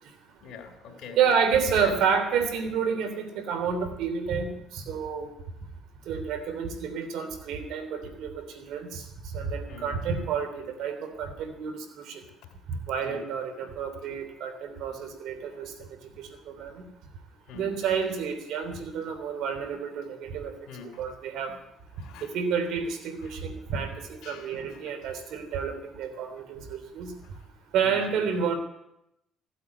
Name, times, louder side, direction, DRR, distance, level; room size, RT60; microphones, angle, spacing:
voice 1, 0.4-1.2 1.8-1.9 9.7-9.9 13.0-13.2 17.5-17.7 20.7-21.0 22.0-22.3 23.3-23.4 24.2-24.8 27.2-27.3 27.8-28.2, left 6 dB, 70° left, 5 dB, 3.3 m, -44 dB
voice 2, 1.1-5.3 6.1-9.0 9.3-12.2 12.7-15.9 16.2-16.8 17.5-20.5 21.0-21.5 22.2-27.1 27.7-28.5, right 6 dB, 70° right, 8 dB, 3.2 m, -29 dB
15.0 x 8.6 x 9.6 m, 0.83 s
supercardioid pair, 80°, 0 cm